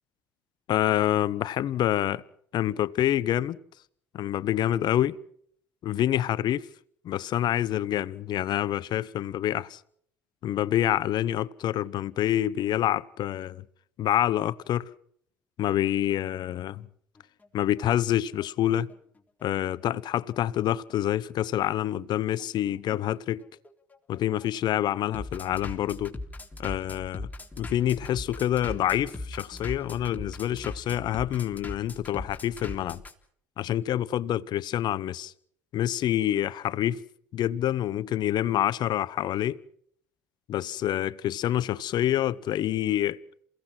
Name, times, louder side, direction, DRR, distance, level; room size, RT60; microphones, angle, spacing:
voice 1, 0.7-2.2 2.5-3.6 4.1-5.2 5.8-6.7 7.0-9.8 10.4-13.6 14.0-14.9 15.6-16.9 17.5-18.9 19.4-23.4 24.1-26.2 26.6-27.3 27.6-33.0 33.6-35.3 35.7-37.0 37.3-39.6 40.5-43.2, left 12 dB, 60° left, 0.9 m, -27 dB
Bass drum, 17.2-33.1, left 2 dB, 20° left, 3.7 m, -40 dB
28.0 x 17.0 x 6.1 m
hypercardioid pair, 65°, 8 cm